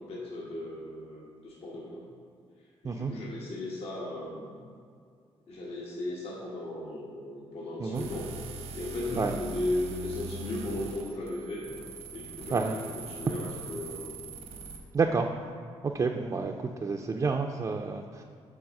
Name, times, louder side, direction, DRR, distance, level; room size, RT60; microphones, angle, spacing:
voice 1, 0.0-2.0 2.8-4.6 5.5-8.3 8.7-11.7 12.1-14.2, left 1 dB, 70° left, -4 dB, 1.3 m, -36 dB
sound 1, 7.9-14.8, right 4 dB, 85° right, 1.0 m, -42 dB
voice 2, 14.9-15.3 15.8-18.2, right 4 dB, 35° right, 2 dB, 0.4 m, -29 dB
7.0 x 3.5 x 6.3 m, 2.2 s
cardioid pair, 90°, 10 cm